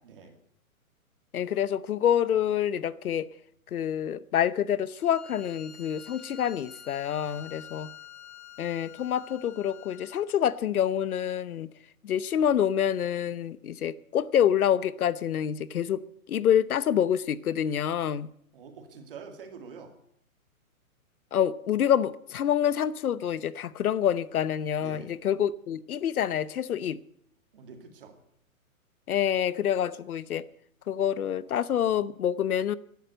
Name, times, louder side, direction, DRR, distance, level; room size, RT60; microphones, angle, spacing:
voice 1, 0.0-0.3 7.3-8.0 18.5-19.9 24.8-25.1 27.5-28.2, right 5 dB, 40° right, 2.3 m, -47 dB
voice 2, 1.3-3.3 3.7-7.9 8.6-11.7 12.0-16.0 16.3-18.3 21.3-27.0 29.1-30.5 30.9-32.8, left 9 dB, 80° left, 0.8 m, -27 dB
Bowed string instrument, 4.9-10.3, left 8 dB, 50° left, 2.2 m, -48 dB
13.0 x 11.5 x 7.9 m
hypercardioid pair, 175°, 43 cm